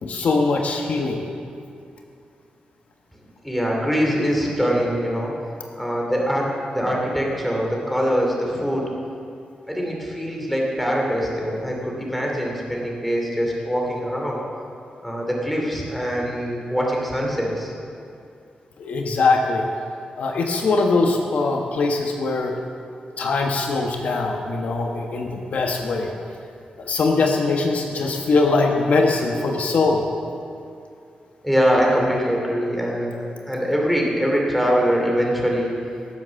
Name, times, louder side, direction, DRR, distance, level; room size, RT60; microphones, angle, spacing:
voice 1, 0.0-1.2 18.8-19.6 20.2-22.5 23.2-26.1 26.8-30.0, left 3 dB, 60° left, 2 dB, 1.2 m, -21 dB
voice 2, 3.4-5.3 5.8-8.8 9.7-14.4 15.0-17.7 31.4-35.7, equal, ahead, -2 dB, 2.6 m, -23 dB
18.0 x 7.8 x 7.0 m, 2.5 s
wide cardioid pair, 150°, 3 cm